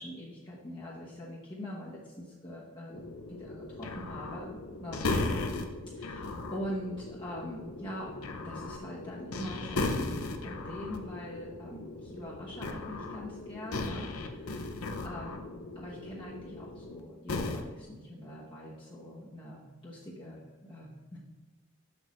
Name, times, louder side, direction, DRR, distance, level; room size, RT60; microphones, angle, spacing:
voice 1, 0.0-5.2 5.9-8.2 8.4-10.1 10.4-15.4 15.7-21.2, equal, 25° left, -7 dB, 1.1 m, -43 dB
sound 1, 2.9-17.0 17.3-17.6, left 2 dB, 90° left, 0.7 m, -37 dB
7.1 x 6.1 x 3.1 m, 1.3 s
head